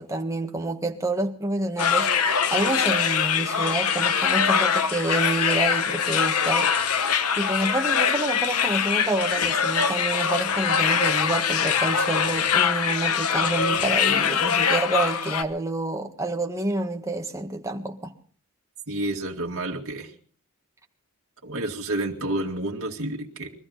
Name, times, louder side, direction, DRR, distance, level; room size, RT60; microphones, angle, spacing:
voice 1, 0.0-6.7 7.3-18.1, right 2 dB, 15° right, 1.5 m, -28 dB
sound 1, 1.8-15.4, left 7 dB, 90° left, 1.0 m, -23 dB
voice 2, 18.9-20.1 21.4-23.5, right 1 dB, 65° right, 2.2 m, -30 dB
23.5 x 14.5 x 4.0 m
head